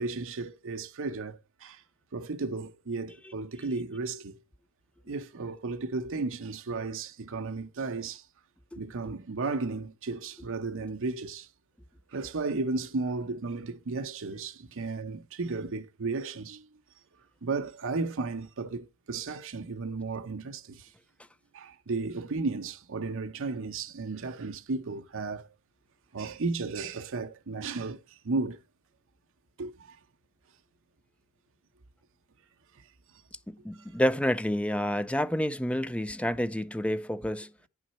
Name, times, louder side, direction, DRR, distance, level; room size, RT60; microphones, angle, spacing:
voice 1, 0.0-1.8 2.1-4.4 5.1-8.2 8.8-11.5 12.1-16.7 17.4-20.9 21.5-25.5 26.1-28.6 29.6-30.0, right 3 dB, 65° right, 0.8 m, -34 dB
voice 2, 33.5-37.5, equal, 5° left, 0.4 m, -29 dB
9.8 x 6.0 x 4.1 m
head